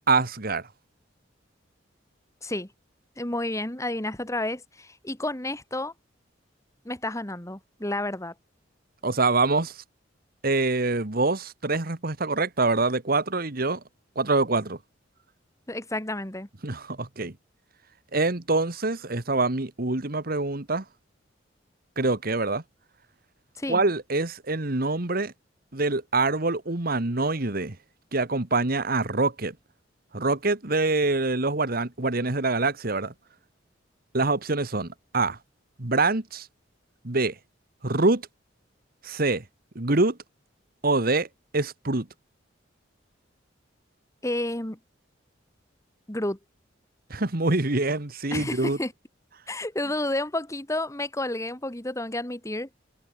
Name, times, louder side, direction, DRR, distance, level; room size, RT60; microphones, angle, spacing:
voice 1, 0.1-0.7 9.0-9.8 10.4-13.8 14.1-14.8 16.6-17.3 18.1-20.8 22.0-22.6 23.7-25.3 25.7-27.8 28.1-29.5 30.1-33.1 34.1-35.4 35.8-36.5 37.0-37.3 37.8-38.2 39.0-39.4 39.7-40.2 40.8-41.3 41.5-42.1 47.1-48.8, right 3 dB, 50° right, 1.7 m, -25 dB
voice 2, 3.2-5.9 6.8-8.3 15.7-16.5 23.6-23.8 44.2-44.8 46.1-46.4 48.3-48.9 49.5-52.7, left 1 dB, 15° left, 2.3 m, -30 dB
head